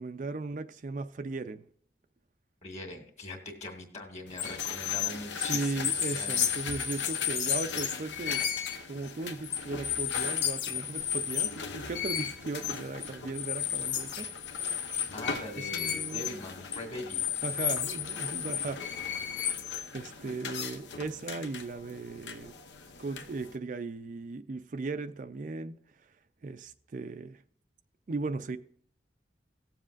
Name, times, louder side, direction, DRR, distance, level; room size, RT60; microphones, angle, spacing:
voice 1, 0.0-1.6 5.4-8.4 8.9-14.3 15.3-16.3 17.4-18.8 19.2-19.5 19.9-22.5 23.0-25.7 26.4-27.4 28.1-28.6, right 3 dB, 45° right, 0.4 m, -37 dB
voice 2, 2.6-6.5 15.1-17.3, left 2 dB, 40° left, 2.0 m, -42 dB
sound 1, 4.3-23.6, left 8 dB, 80° left, 0.9 m, -34 dB
18.0 x 7.4 x 2.5 m
head